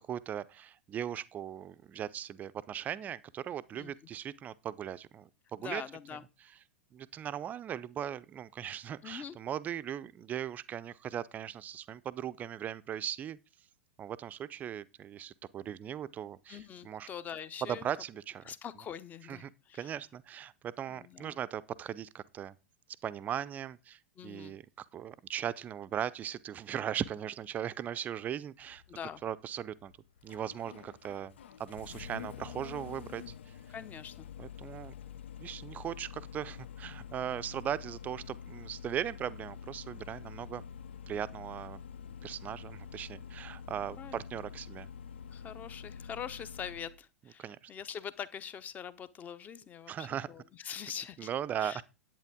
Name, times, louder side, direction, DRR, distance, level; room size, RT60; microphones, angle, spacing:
voice 1, 0.0-5.8 6.9-13.4 14.0-17.1 17.6-18.5 19.3-22.6 23.0-28.8 29.2-29.9 30.2-33.6 34.4-34.9 35.4-40.6 41.1-41.8 42.2-44.9 47.4-47.6 49.9-50.3 51.2-51.8, right 10 dB, 25° right, 0.6 m, -38 dB
voice 2, 5.6-6.2 9.0-9.3 16.5-17.9 18.4-20.0 20.9-21.4 24.2-24.6 28.9-29.2 33.7-34.3 44.0-44.2 45.3-51.3 51.6-51.8, left 8 dB, 20° left, 0.8 m, -43 dB
Engine starting, 28.6-47.0, left 7 dB, 60° left, 0.5 m, -47 dB
10.5 x 8.9 x 3.6 m
figure-of-eight pair, 95°, 7 cm